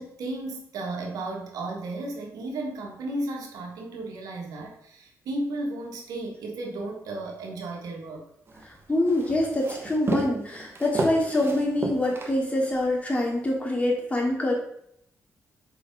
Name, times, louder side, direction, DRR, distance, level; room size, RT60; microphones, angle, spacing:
voice 1, 0.0-8.3, right 2 dB, 85° right, 1 dB, 1.5 m, -34 dB
Walk footsteps, 8.5-12.9, right 2 dB, 40° right, 1.3 m, -32 dB
voice 2, 8.6-14.5, left 1 dB, 20° left, -3 dB, 2.6 m, -25 dB
5.1 x 5.0 x 5.2 m, 0.74 s
cardioid pair, 75°, 6 cm